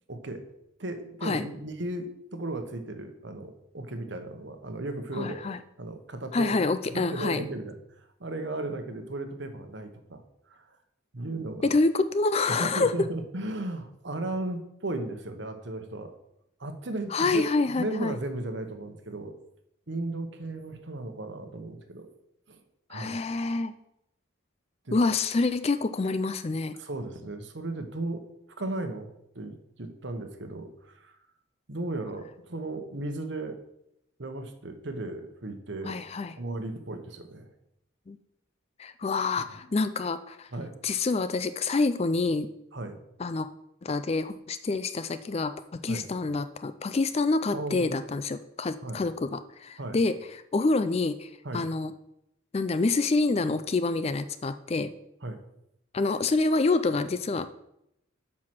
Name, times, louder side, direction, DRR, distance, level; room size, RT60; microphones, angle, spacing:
voice 1, 0.1-0.4 0.8-5.4 5.8-10.8 11.1-11.7 12.5-16.1 16.6-19.4 19.9-22.1 22.5-22.6 22.9-23.2 24.8-25.0 26.8-28.2 28.6-29.1 29.3-31.1 31.7-33.6 34.2-36.0 36.4-37.5 39.4-39.5 40.5-40.7 42.7-43.0 45.9-46.0 47.5-48.0 48.8-49.0 49.8-50.0 51.4-51.6 55.2-55.4, right 2 dB, 60° right, 7 dB, 1.1 m, -35 dB
voice 2, 5.2-5.6 6.3-7.4 11.6-12.9 17.1-18.2 22.9-23.7 24.9-26.8 35.8-36.3 38.1-38.2 38.8-40.5 40.8-42.5 43.2-43.5 43.8-50.2 50.5-51.9 52.5-54.9 55.9-57.6, left 3 dB, 30° left, 11 dB, 0.4 m, -27 dB
7.6 x 5.9 x 6.0 m, 0.80 s
head